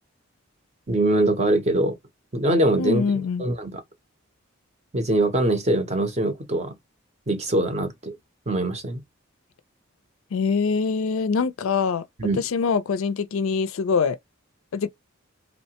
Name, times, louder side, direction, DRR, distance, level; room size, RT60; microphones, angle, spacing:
voice 1, 0.9-2.0 2.3-3.0 3.4-3.8 4.9-6.7 7.3-8.1 8.5-9.0 12.2-12.4, right 1 dB, 30° right, 0.5 m, -22 dB
voice 2, 2.8-3.4 10.3-12.0 12.4-14.2 14.7-14.9, left 5 dB, 70° left, 0.4 m, -24 dB
2.8 x 2.1 x 2.8 m
head